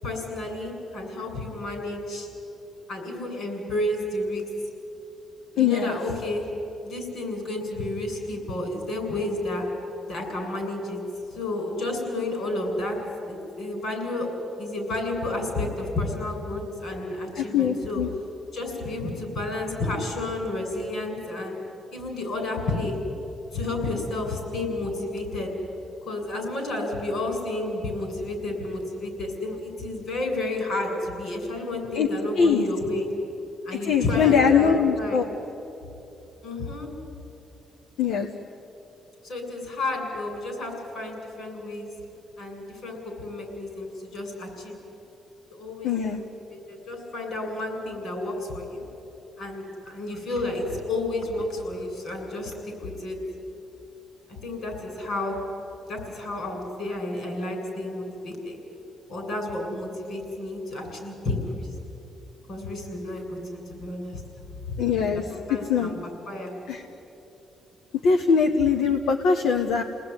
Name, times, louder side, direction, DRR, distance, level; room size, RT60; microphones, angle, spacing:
voice 1, 0.0-2.3 2.9-4.7 5.5-6.5 6.8-9.7 10.1-11.0 11.3-13.0 13.3-14.3 14.6-18.0 18.5-21.6 21.9-23.0 23.5-25.5 26.0-33.1 33.6-35.2 36.4-36.9 39.2-41.9 42.4-44.9 45.5-48.8 49.4-53.2 54.3-55.4 55.8-58.6 59.1-61.7 62.5-64.2 64.7-64.8 65.1-66.5, left 2 dB, 65° left, 3 dB, 8.0 m, -31 dB
voice 2, 5.6-6.0 17.4-18.1 31.9-32.1 32.4-32.7 33.7-35.3 38.0-38.3 45.8-46.2 64.8-65.2 65.7-65.9 66.7-66.8 68.0-69.8, left 6 dB, 85° left, 4 dB, 1.4 m, -22 dB
30.0 x 19.5 x 10.0 m, 3.0 s
cardioid pair, 90°, 0 cm